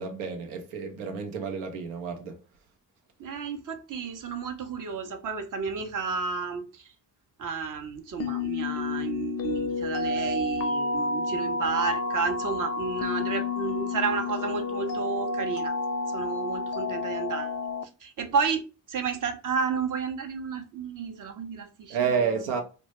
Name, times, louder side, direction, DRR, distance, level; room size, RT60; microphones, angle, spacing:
voice 1, 0.0-2.4 21.9-22.6, right 6 dB, 90° right, 0.6 m, -30 dB
voice 2, 3.2-6.9 7.4-15.7 16.1-17.5 18.0-22.3, right 5 dB, 40° right, 0.6 m, -31 dB
sound 1, 8.2-17.8, left 3 dB, 35° left, 0.4 m, -30 dB
2.1 x 2.0 x 2.9 m
hypercardioid pair, 40°, 49 cm